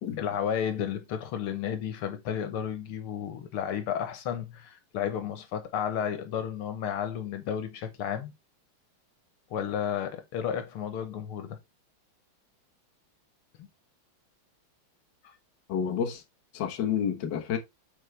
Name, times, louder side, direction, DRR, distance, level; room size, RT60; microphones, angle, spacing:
voice 1, 0.2-8.3 9.5-11.6 15.2-15.3, left 9 dB, 90° left, 2.1 m, -32 dB
voice 2, 15.7-16.2 16.5-17.6, left 8 dB, 60° left, 1.7 m, -29 dB
8.5 x 4.6 x 3.4 m
omnidirectional pair, 2.3 m